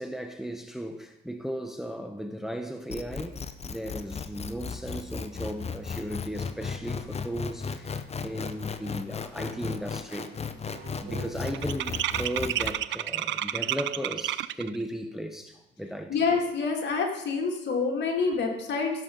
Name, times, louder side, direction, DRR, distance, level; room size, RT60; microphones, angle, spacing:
voice 1, 0.0-10.3 10.7-16.3, equal, ahead, 0.9 m, -36 dB
sound 1, 2.9-12.7, left 5 dB, 30° left, 0.7 m, -35 dB
sound 2, 9.1-9.2 9.5-9.9 10.1-14.8, right 13 dB, 70° right, 0.4 m, -31 dB
voice 2, 16.1-18.9, left 4 dB, 60° left, 2.5 m, -27 dB
15.5 x 6.9 x 3.9 m
cardioid pair, 90°, 20 cm